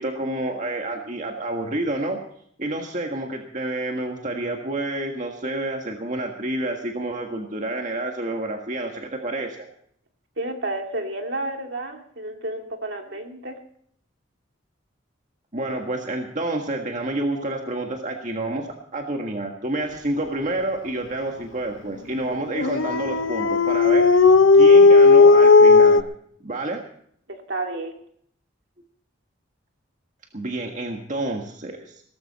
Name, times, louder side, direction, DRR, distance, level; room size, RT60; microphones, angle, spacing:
voice 1, 0.0-2.2 2.6-9.7 15.5-18.7 18.9-24.1 24.5-26.0 26.4-26.8 30.3-32.0, right 2 dB, 40° right, 2 dB, 1.7 m, -29 dB
voice 2, 10.4-13.6 27.3-28.0, right 2 dB, 65° right, 3 dB, 2.5 m, -31 dB
Dog, 22.5-26.0, left 4 dB, 85° left, 0.8 m, -13 dB
18.0 x 14.5 x 4.2 m, 0.64 s
head